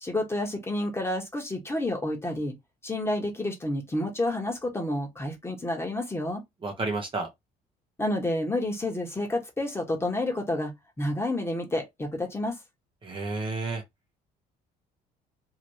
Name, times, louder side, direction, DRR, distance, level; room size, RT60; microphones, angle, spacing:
voice 1, 0.0-2.5 2.8-6.4 8.0-12.6, left 1 dB, 15° left, 1.3 m, -29 dB
voice 2, 6.6-7.3 13.0-13.8, right 3 dB, 30° right, 0.9 m, -31 dB
2.9 x 2.8 x 3.0 m
cardioid pair, 110°, 17 cm